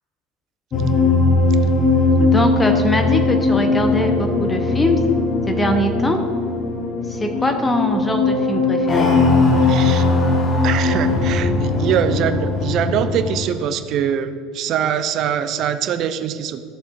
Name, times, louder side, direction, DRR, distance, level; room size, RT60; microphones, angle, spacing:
sound 1, 0.7-13.5, left 3 dB, 35° left, 1.4 m, -19 dB
voice 1, 2.2-5.0 5.5-6.2 7.1-9.1, left 1 dB, 15° left, 5 dB, 0.8 m, -22 dB
voice 2, 9.7-10.1 10.6-16.6, right 9 dB, 45° right, 10 dB, 0.5 m, -23 dB
13.5 x 7.0 x 2.5 m, 2.1 s
figure-of-eight pair, 70°, 0 cm